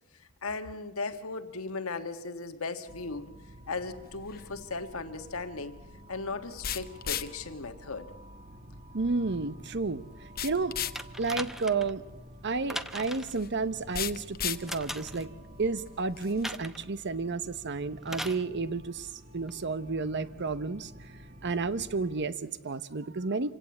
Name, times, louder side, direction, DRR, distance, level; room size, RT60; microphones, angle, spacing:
voice 1, 0.2-3.3 3.7-5.8 6.1-8.1, left 3 dB, 80° left, 8 dB, 1.6 m, -37 dB
sound 1, 2.9-22.2, equal, 35° right, 1.3 m, -51 dB
sound 2, 4.0-16.6, left 10 dB, 45° left, 0.9 m, -40 dB
voice 2, 8.9-10.8 11.2-12.0 12.4-15.3 15.6-21.1 21.4-23.5, right 4 dB, 55° right, 15 dB, 0.9 m, -31 dB
sound 3, 11.0-11.9 12.7-13.4 14.7-15.3 16.4-16.8 18.1-18.4 19.5-19.6, equal, ahead, 0.8 m, -38 dB
26.5 x 16.5 x 8.4 m, 1.2 s
head